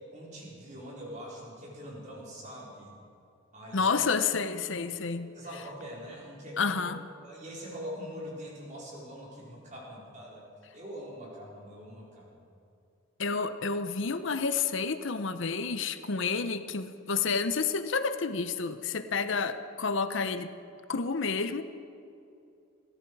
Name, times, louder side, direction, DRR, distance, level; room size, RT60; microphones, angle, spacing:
voice 1, 0.0-2.9 3.5-3.9 5.3-6.9 7.2-10.5 10.7-12.4, equal, 35° right, -4 dB, 4.4 m, -43 dB
voice 2, 3.7-5.3 6.6-7.0 13.2-20.5 20.9-21.6, left 5 dB, 70° left, 10 dB, 0.8 m, -30 dB
20.5 x 15.0 x 4.7 m, 2.6 s
head